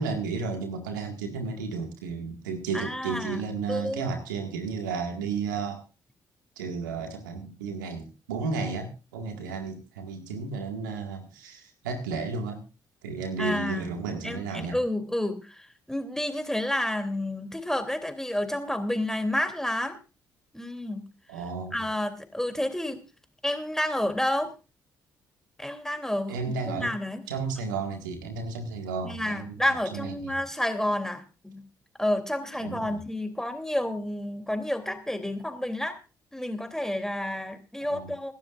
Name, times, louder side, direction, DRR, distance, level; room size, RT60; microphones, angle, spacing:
voice 1, 0.0-5.8 6.6-12.6 13.0-14.8 21.3-21.8 26.3-26.9 27.3-29.6 29.9-30.4 32.6-33.0 37.9-38.1, right 4 dB, 90° right, 5 dB, 2.0 m, -33 dB
voice 2, 2.7-3.4 3.7-4.1 13.4-13.9 14.2-20.0 20.5-21.0 21.7-23.0 23.4-24.5 25.6-27.2 29.0-31.7 32.0-36.0 36.3-38.3, left 1 dB, 5° left, 7 dB, 3.1 m, -30 dB
25.0 x 12.0 x 2.6 m, 0.30 s
hypercardioid pair, 45°, 10 cm